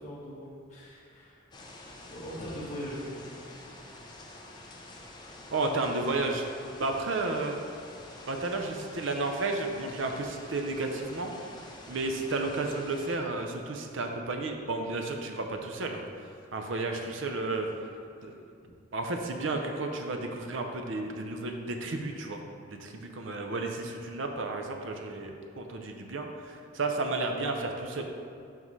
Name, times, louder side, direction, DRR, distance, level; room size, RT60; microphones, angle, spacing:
voice 1, 0.0-1.5 2.1-3.5, equal, 35° left, -7 dB, 1.6 m, -41 dB
sound 1, 1.5-13.2, left 2 dB, 20° left, 0.5 m, -48 dB
voice 2, 5.5-6.4 6.8-7.6 8.3-11.3 11.9-16.0 16.5-17.7 18.2-18.4 18.9-22.4 22.7-28.0, right 2 dB, 65° right, 3 dB, 0.6 m, -32 dB
10.5 x 3.7 x 3.2 m, 2.4 s
head